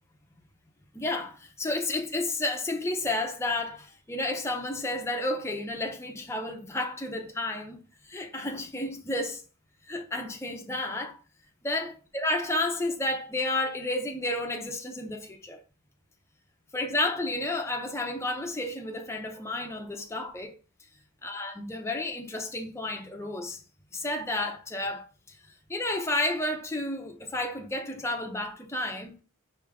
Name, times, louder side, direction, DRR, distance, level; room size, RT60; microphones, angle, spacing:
voice 1, 0.9-9.4 9.9-11.2 11.6-15.6 16.7-20.5 21.2-23.6 23.9-25.4 25.7-29.2, left 2 dB, 10° left, 0.7 m, -31 dB
5.0 x 2.8 x 3.5 m
head